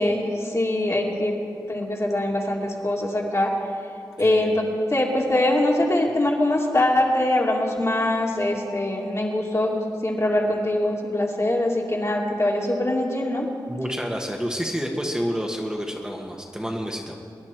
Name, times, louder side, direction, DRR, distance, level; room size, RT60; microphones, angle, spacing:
voice 1, 0.0-1.3 1.7-3.5 4.2-4.5 4.9-13.5, left 1 dB, 35° left, -1 dB, 2.5 m, -23 dB
voice 2, 4.2-4.5 13.7-17.2, equal, 10° right, 0 dB, 1.5 m, -29 dB
23.0 x 11.0 x 4.6 m, 2.5 s
wide cardioid pair, 60°, 8 cm